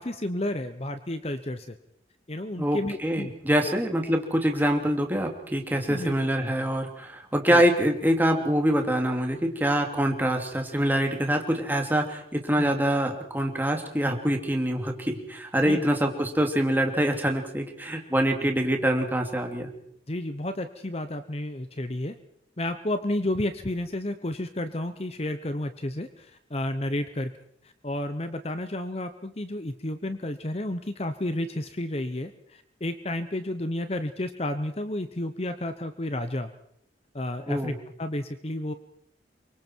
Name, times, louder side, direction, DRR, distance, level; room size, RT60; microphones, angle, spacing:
voice 1, 0.0-1.7 2.3-3.3 3.6-3.7 5.9-6.1 6.4-6.5 7.5-7.6 12.6-12.7 15.7-15.8 18.4-18.5 20.1-22.1 22.6-27.3 27.6-36.5 37.1-38.7, left 1 dB, 35° left, 10 dB, 1.0 m, -31 dB
voice 2, 2.6-19.7 37.5-37.7, equal, 10° right, 3 dB, 2.8 m, -25 dB
27.5 x 24.5 x 4.7 m, 0.70 s
head